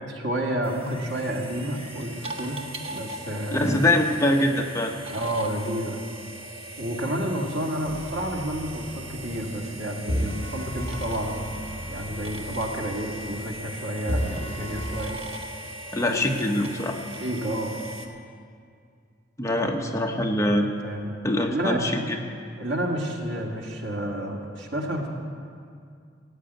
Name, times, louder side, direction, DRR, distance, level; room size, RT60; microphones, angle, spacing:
voice 1, 0.1-2.6 2.9-3.8 5.1-6.0 6.8-11.6 11.9-15.2 17.1-17.8 20.6-21.1 21.5-21.8 22.6-25.1, right 1 dB, 80° right, 0 dB, 2.1 m, -30 dB
sound 1, 0.6-18.1, right 1 dB, 30° right, 1.2 m, -39 dB
voice 2, 3.5-4.9 15.9-17.0 19.4-20.7 21.2-22.0, left 1 dB, 15° left, 2 dB, 0.9 m, -23 dB
sound 2, 7.9-9.7 10.1-13.8 14.1-15.1, equal, 60° right, 2.6 m, -34 dB
17.0 x 7.7 x 9.1 m, 2.3 s
head